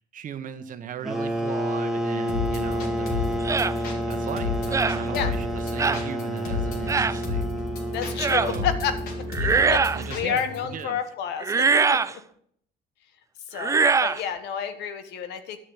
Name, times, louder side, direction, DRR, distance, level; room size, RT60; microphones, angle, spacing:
voice 1, 0.0-3.4 4.1-7.5 8.4-8.7 9.3-11.0, right 8 dB, 50° right, 10 dB, 1.2 m, -37 dB
sound 1, 1.0-9.5, equal, ahead, 1.6 m, -30 dB
sound 2, 2.3-10.6, left 3 dB, 65° left, 3.5 m, -32 dB
sound 3, 3.4-3.7 4.7-5.0 5.8-6.0 6.9-7.2 8.2-8.5 9.3-10.1 11.4-12.1 13.5-14.2, right 5 dB, 20° right, 0.4 m, -22 dB
voice 2, 7.9-8.9 9.7-9.8 10.1-12.2 13.5-15.6, left 8 dB, 80° left, 10 dB, 1.4 m, -30 dB
11.0 x 6.8 x 8.1 m, 0.65 s
cardioid pair, 110°, 17 cm